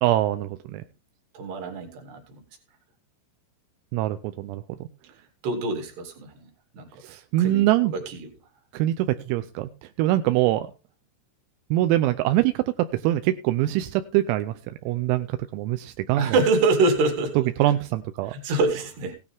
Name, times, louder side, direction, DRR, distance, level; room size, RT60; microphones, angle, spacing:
voice 1, 0.0-0.8 3.9-4.9 7.0-7.9 8.7-9.7 10.0-10.7 11.7-12.6 12.9-14.5 14.9-16.3 17.4-18.3, right 15 dB, 85° right, 10 dB, 3.4 m, -23 dB
voice 2, 1.3-2.4 5.4-6.9 7.4-7.7 7.9-8.3 16.1-17.5 18.3-19.1, right 3 dB, 60° right, 4 dB, 4.3 m, -25 dB
17.0 x 9.6 x 3.6 m, 0.31 s
omnidirectional pair, 6.0 m